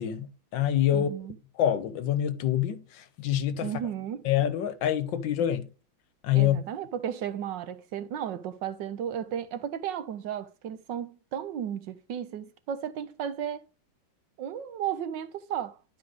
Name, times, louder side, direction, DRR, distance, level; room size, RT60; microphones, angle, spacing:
voice 1, 0.0-1.1 1.6-3.7 4.2-5.7 6.2-6.6, left 11 dB, 75° left, 1.5 m, -26 dB
voice 2, 0.9-1.4 3.6-4.2 6.3-13.6 14.4-15.8, right 9 dB, 70° right, 1.3 m, -34 dB
10.5 x 4.9 x 3.9 m
omnidirectional pair, 2.1 m